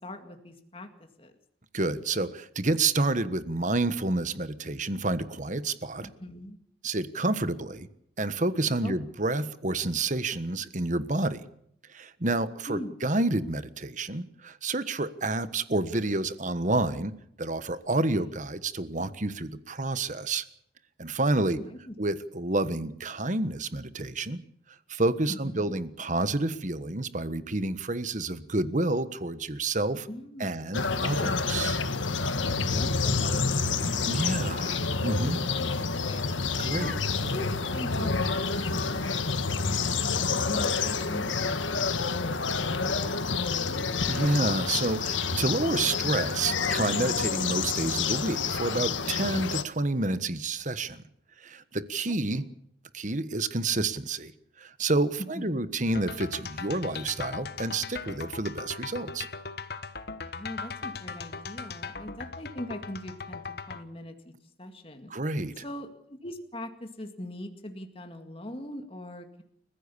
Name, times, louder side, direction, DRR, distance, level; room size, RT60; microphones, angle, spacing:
voice 1, 0.0-1.3 6.0-6.6 8.8-9.0 12.7-13.0 18.1-18.3 21.4-22.0 25.3-25.8 30.1-30.6 32.5-43.9 52.1-52.5 55.2-55.7 60.3-63.4 63.7-64.3 64.6-65.1 65.5-69.4, left 1 dB, 30° left, 5 dB, 2.1 m, -42 dB
voice 2, 1.7-6.1 6.8-7.9 8.2-11.5 11.9-17.1 17.4-20.4 21.0-21.6 22.0-24.4 24.9-30.1 30.4-31.8 34.0-35.4 36.6-37.0 44.1-51.0 51.4-52.4 52.9-54.3 54.6-59.3 65.1-65.6, right 2 dB, 40° right, 13 dB, 1.4 m, -29 dB
sound 1, 30.7-49.6, left 4 dB, 90° left, 1.6 m, -28 dB
sound 2, 55.9-63.8, left 5 dB, 55° left, 1.2 m, -39 dB
29.5 x 15.5 x 7.0 m, 0.71 s
head